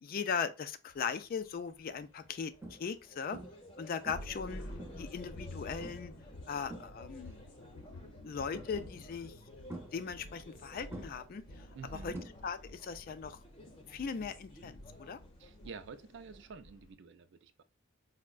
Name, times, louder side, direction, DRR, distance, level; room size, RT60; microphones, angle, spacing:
voice 1, 0.0-3.4 3.8-4.6 5.0-6.1 6.5-7.4 8.2-9.6 9.9-11.4 12.0-12.1 12.4-13.4 13.9-15.2, left 6 dB, 45° left, 0.3 m, -38 dB
sound 1, 0.9-1.1 1.4-1.8 3.9-16.9, left 1 dB, 75° left, 0.6 m, -50 dB
sound 2, 1.3-1.4 1.9-2.0 2.6-3.0 3.3-3.7 4.1-5.2 5.8-6.2 6.5-7.3 8.5-9.0 9.7-10.6 10.9-12.8 13.1-13.5 15.5-15.6, right 1 dB, 10° right, 0.7 m, -48 dB
sound 3, 1.6-16.5, equal, 25° left, 0.8 m, -56 dB
voice 2, 11.7-12.2 15.4-17.6, right 5 dB, 60° right, 0.4 m, -49 dB
4.4 x 2.1 x 2.3 m
head